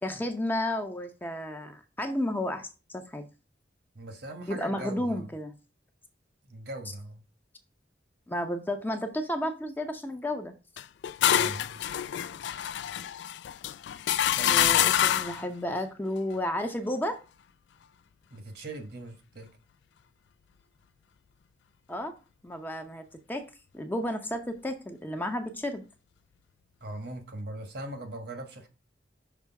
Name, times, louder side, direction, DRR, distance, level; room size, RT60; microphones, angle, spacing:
voice 1, 0.0-3.2 4.5-5.5 8.3-10.5 14.4-17.2 21.9-22.1 22.4-23.5 23.7-25.8, left 1 dB, 10° left, 0.7 m, -32 dB
voice 2, 3.9-5.3 6.4-7.2 11.3-11.8 14.4-14.9 18.3-19.5 26.8-28.7, right 1 dB, 60° right, 1.4 m, -40 dB
sound 1, 10.8-15.5, left 11 dB, 70° left, 0.3 m, -26 dB
6.1 x 3.3 x 5.7 m
head